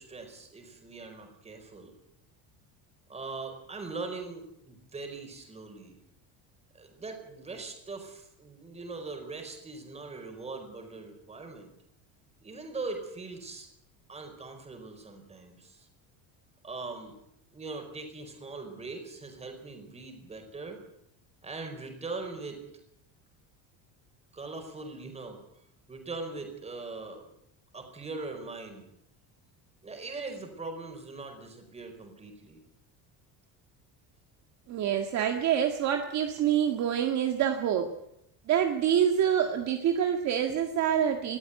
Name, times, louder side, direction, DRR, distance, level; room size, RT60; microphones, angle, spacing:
voice 1, 0.0-1.9 3.1-6.0 6.7-11.7 12.4-13.7 14.1-15.9 16.6-17.2 17.5-20.8 21.4-22.6 24.3-25.4 25.9-27.3 27.7-28.9 29.8-32.6, right 3 dB, 15° right, 4 dB, 4.8 m, -41 dB
voice 2, 34.7-37.9 38.5-41.4, right 9 dB, 40° right, 4 dB, 1.8 m, -26 dB
20.5 x 14.0 x 9.3 m, 0.78 s
cardioid pair, 165°, 40 cm